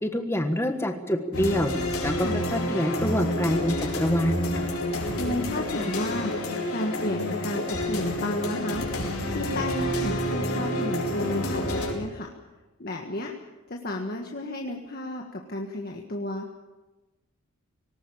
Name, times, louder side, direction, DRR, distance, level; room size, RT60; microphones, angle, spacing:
voice 1, 0.0-1.7 2.0-4.7, left 1 dB, 10° left, 5 dB, 1.4 m, -26 dB
sound 1, 1.3-11.9, left 1 dB, 85° left, 5.0 m, -29 dB
voice 2, 5.1-6.3 6.7-8.9 9.2-12.3 12.8-13.3 13.7-16.5, left 1 dB, 45° left, 2 dB, 1.7 m, -32 dB
19.0 x 19.0 x 8.8 m, 1.1 s
head